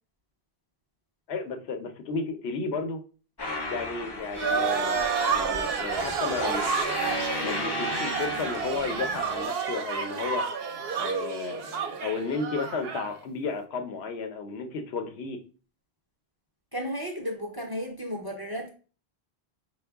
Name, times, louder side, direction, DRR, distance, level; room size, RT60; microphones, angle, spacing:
voice 1, 1.3-3.0 3.7-6.7 7.4-10.5 11.0-15.4, left 4 dB, 80° left, 0.9 m, -33 dB
sound 1, 3.4-9.5, left 2 dB, 30° left, 0.6 m, -35 dB
sound 2, 4.4-13.1, right 6 dB, 70° right, 0.8 m, -30 dB
voice 2, 16.7-18.7, equal, 30° right, 0.5 m, -33 dB
4.4 x 2.3 x 3.4 m
omnidirectional pair, 1.1 m